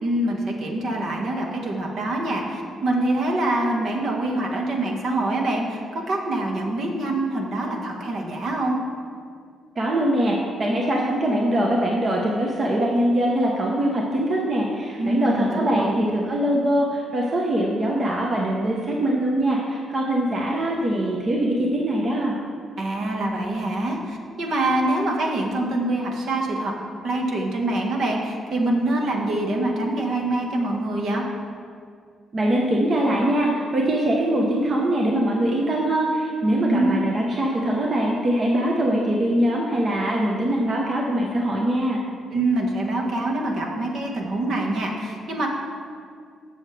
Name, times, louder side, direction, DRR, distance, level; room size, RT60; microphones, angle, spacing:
voice 1, 0.0-8.8 15.0-16.0 22.8-31.2 36.6-36.9 42.3-45.5, right 1 dB, 65° right, 0 dB, 1.5 m, -25 dB
voice 2, 9.8-22.4 32.3-42.0, right 1 dB, 45° right, -2 dB, 1.1 m, -22 dB
15.5 x 6.4 x 3.4 m, 2.2 s
cardioid pair, 90°, 0 cm